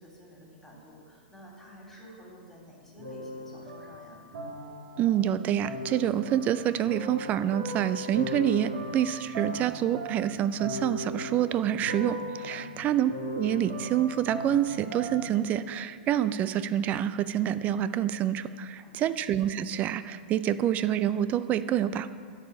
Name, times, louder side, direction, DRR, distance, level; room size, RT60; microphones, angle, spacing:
voice 1, 0.0-4.2 12.5-12.9 18.7-19.1, equal, 5° left, -4 dB, 3.2 m, -50 dB
sound 1, 3.0-5.2 5.6-15.4, left 1 dB, 55° right, 2.8 m, -38 dB
voice 2, 5.0-22.1, right 11 dB, 30° right, 14 dB, 0.4 m, -27 dB
10.5 x 4.9 x 8.0 m, 2.1 s
hypercardioid pair, 110°, 5 cm